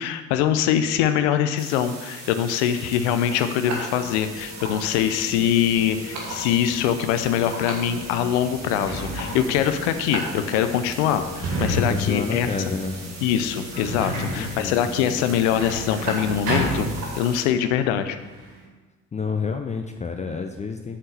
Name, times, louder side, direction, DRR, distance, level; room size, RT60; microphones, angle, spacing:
voice 1, 0.0-12.5 13.2-16.9 17.2-18.2, left 9 dB, 65° left, 9 dB, 0.6 m, -23 dB
sound 1, 1.6-17.4, right 2 dB, 45° right, 1.8 m, -38 dB
sound 2, 3.9-16.8, left 2 dB, 35° left, 1.5 m, -40 dB
Sliding door, 7.7-7.8 8.4-17.6 17.8-18.6, equal, 65° right, 2.2 m, -31 dB
voice 2, 11.9-13.0 14.3-14.8 19.1-21.0, left 5 dB, 20° left, 5 dB, 0.5 m, -29 dB
7.2 x 4.4 x 6.6 m, 1.2 s
figure-of-eight pair, 45°, 37 cm